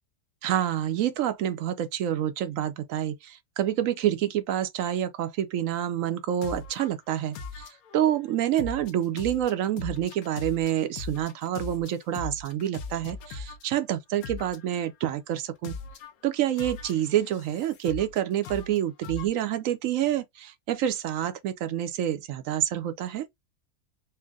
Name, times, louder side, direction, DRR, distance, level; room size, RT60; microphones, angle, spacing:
voice 1, 0.4-15.8 16.2-23.2, right 11 dB, 70° right, 0.9 m, -28 dB
sound 1, 6.4-6.9 7.3-8.1 8.6-13.6 14.2-14.8 15.6-16.1 16.6-18.2 18.4-19.3, left 4 dB, 75° left, 1.2 m, -39 dB
4.5 x 2.1 x 3.5 m
omnidirectional pair, 1.6 m